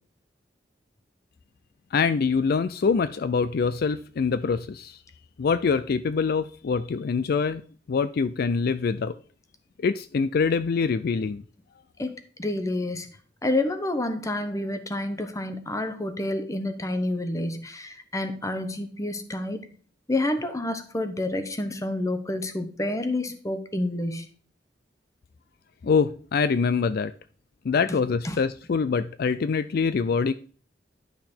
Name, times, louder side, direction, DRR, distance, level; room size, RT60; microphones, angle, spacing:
voice 1, 1.9-5.0 5.4-7.6 7.9-9.2 9.8-11.4 25.8-27.1 27.6-30.3, left 5 dB, 55° left, 13 dB, 0.4 m, -24 dB
voice 2, 12.0-13.1 13.4-19.7 20.1-24.3 28.2-28.4, left 1 dB, 20° left, 8 dB, 1.0 m, -29 dB
11.0 x 5.6 x 4.4 m, 0.42 s
head